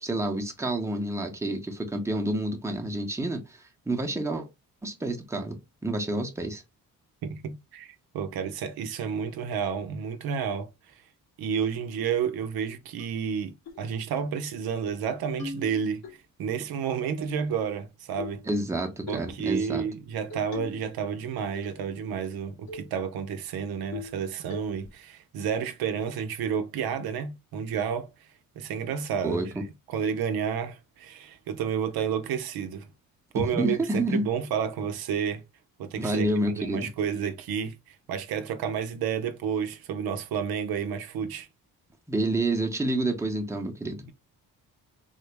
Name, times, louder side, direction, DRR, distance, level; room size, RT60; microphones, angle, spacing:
voice 1, 0.0-3.6 3.9-4.5 4.8-6.6 18.5-19.9 29.2-29.5 33.3-34.3 36.0-36.9 42.1-44.1, right 1 dB, 10° right, 0.7 m, -29 dB
voice 2, 7.2-10.7 11.4-16.0 16.4-18.4 19.1-28.1 28.6-29.5 29.9-32.9 33.3-35.4 35.8-36.3 36.6-41.5, right 7 dB, 80° right, 0.6 m, -30 dB
sound 1, 13.0-13.1 13.7-13.9 14.2-14.3 14.7-15.0 15.4-16.1 17.2-17.8 18.2-18.5 19.1-19.3 20.3-20.9 21.2-21.9 22.2-22.3 22.7-22.9 23.3-23.4 23.9-24.2 24.5-24.9, left 4 dB, 85° left, 1.7 m, -40 dB
3.8 x 2.0 x 3.3 m
cardioid pair, 85°, 36 cm